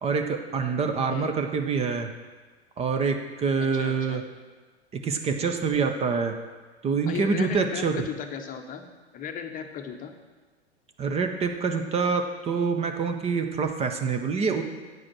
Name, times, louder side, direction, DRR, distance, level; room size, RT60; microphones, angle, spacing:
voice 1, 0.0-2.1 2.8-4.2 5.0-6.4 6.8-8.0 11.0-14.6, right 5 dB, 20° right, 6 dB, 0.6 m, -26 dB
voice 2, 3.6-4.2 7.1-8.9 9.1-10.1, left 7 dB, 25° left, 6 dB, 0.9 m, -36 dB
9.3 x 4.9 x 6.1 m, 1.3 s
hypercardioid pair, 100°, 33 cm